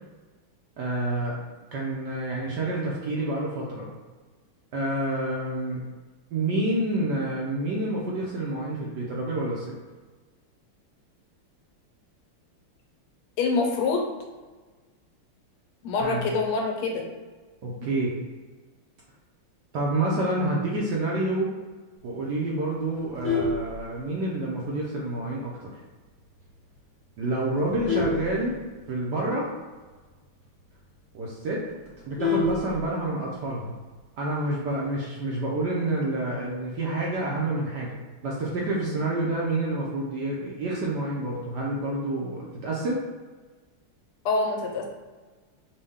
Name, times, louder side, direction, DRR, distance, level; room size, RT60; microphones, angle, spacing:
voice 1, 0.8-1.4 1.7-3.9 4.7-5.8 6.3-9.7 16.0-16.2 17.6-18.1 19.7-21.5 22.0-25.5 27.2-28.5 28.9-29.5 31.1-31.7 32.1-33.7 34.2-43.0, right 2 dB, 70° right, -4 dB, 1.0 m, -28 dB
voice 2, 13.4-14.0 15.8-17.1 44.2-44.8, left 3 dB, 85° left, 1 dB, 1.6 m, -25 dB
Vehicle horn car horn honking, 22.9-24.4 24.9-25.1 25.4-25.5 26.0-26.1 26.4-26.7 27.3-29.1 29.5-29.6 29.9-30.0 30.4-30.5 30.8-30.9 31.2-33.2 34.4-34.8, left 4 dB, 20° left, 0.3 m, -29 dB
5.3 x 2.2 x 3.5 m, 1.3 s
omnidirectional pair, 2.4 m